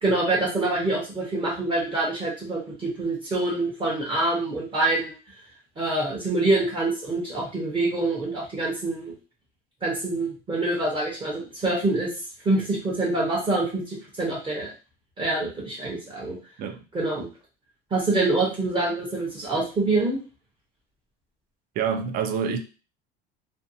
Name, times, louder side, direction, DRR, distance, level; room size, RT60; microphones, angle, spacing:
voice 1, 0.0-5.1 5.8-9.1 9.8-12.1 12.4-14.7 15.2-16.4 16.9-17.3 17.9-20.2, right 2 dB, 25° right, 0.8 m, -25 dB
voice 2, 21.8-22.6, right 7 dB, 45° right, 0.4 m, -26 dB
2.6 x 2.2 x 2.6 m
cardioid pair, 155°, 21 cm